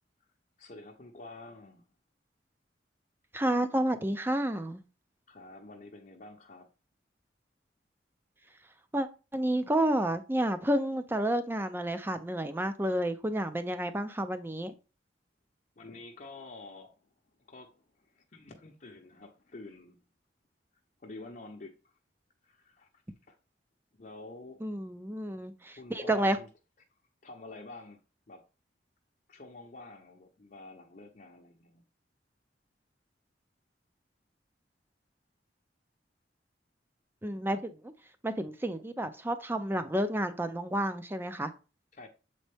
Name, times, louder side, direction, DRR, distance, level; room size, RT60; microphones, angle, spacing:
voice 1, 0.6-1.8 5.3-6.7 15.8-17.0 17.5-20.0 21.0-21.9 22.4-22.9 23.3-23.4 24.0-24.6 25.8-26.5 27.2-28.0 28.3-28.4 29.3-31.8 41.9-42.1, left 2 dB, 45° left, 0.7 m, -48 dB
voice 2, 3.3-4.8 8.9-9.1 9.3-14.7 24.6-26.4 37.2-37.9 38.2-41.5, right 1 dB, 10° right, 0.5 m, -30 dB
7.2 x 4.2 x 3.4 m
head